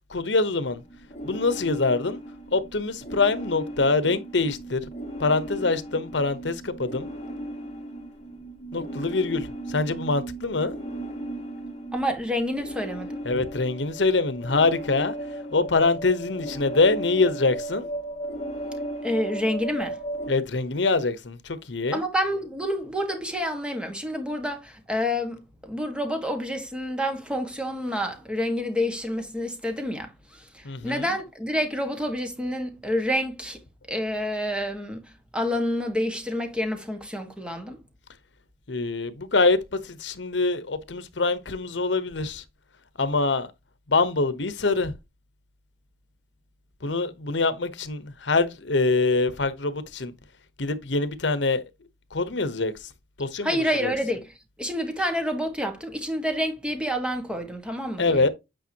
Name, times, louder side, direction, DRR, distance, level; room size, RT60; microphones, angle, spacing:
voice 1, 0.1-0.8 1.2-2.2 2.5-4.8 5.2-7.1 8.7-10.7 13.2-15.1 15.5-17.9 20.3-22.0 30.6-31.2 38.7-42.4 43.0-43.5 43.9-44.9 46.8-50.1 50.6-51.6 52.1-52.7 53.2-53.9 58.0-58.3, left 3 dB, 75° left, 1.0 m, -24 dB
sound 1, 0.6-20.3, right 1 dB, 35° left, 2.1 m, -36 dB
voice 2, 11.9-13.2 19.0-20.0 21.9-33.6 33.9-35.0 35.3-37.8 53.4-54.3 54.6-58.3, equal, 5° right, 1.6 m, -28 dB
9.0 x 5.2 x 2.9 m
head